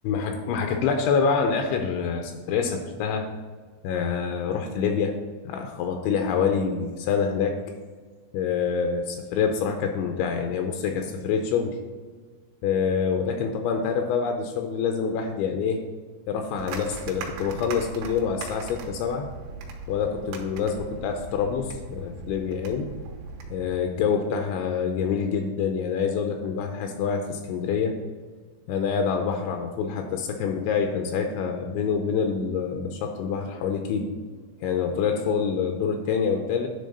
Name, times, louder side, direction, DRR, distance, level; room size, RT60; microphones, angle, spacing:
voice 1, 0.0-3.3 3.8-5.2 5.5-7.6 8.3-11.8 12.6-15.8 16.3-19.3 19.9-22.9 23.5-28.0 28.7-34.1 34.6-36.7, left 6 dB, 80° left, 4 dB, 2.8 m, -26 dB
sound 1, 16.6-23.8, right 4 dB, 80° right, 3.3 m, -39 dB
10.0 x 3.7 x 5.3 m, 1.4 s
omnidirectional pair, 5.5 m